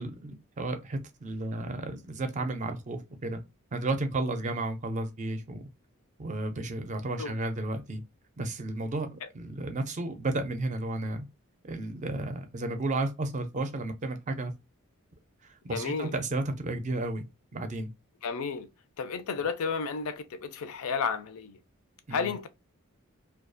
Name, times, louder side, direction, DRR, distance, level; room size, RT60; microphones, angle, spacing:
voice 1, 0.0-3.4 3.7-5.7 6.2-8.0 8.4-11.3 11.6-14.5 15.4-17.2 17.5-17.9 22.1-22.3, right 2 dB, 35° right, 0.4 m, -33 dB
voice 2, 15.7-16.1 18.2-18.7 19.0-21.6 22.1-22.5, left 5 dB, 80° left, 0.4 m, -32 dB
2.3 x 2.3 x 2.5 m
head